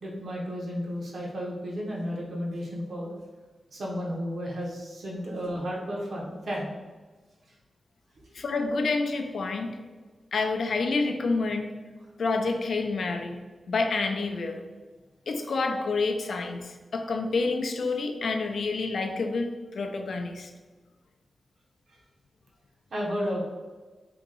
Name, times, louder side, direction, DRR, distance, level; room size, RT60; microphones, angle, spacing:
voice 1, 0.0-3.1 3.7-6.7 8.2-8.3 21.9-22.0 22.9-23.4, equal, 60° right, -3 dB, 0.9 m, -33 dB
voice 2, 8.3-9.8 10.3-11.7 12.2-13.4 13.7-14.6 15.3-20.5, left 3 dB, 70° left, 5 dB, 0.4 m, -28 dB
2.9 x 2.8 x 3.7 m, 1.3 s
wide cardioid pair, 140°, 0 cm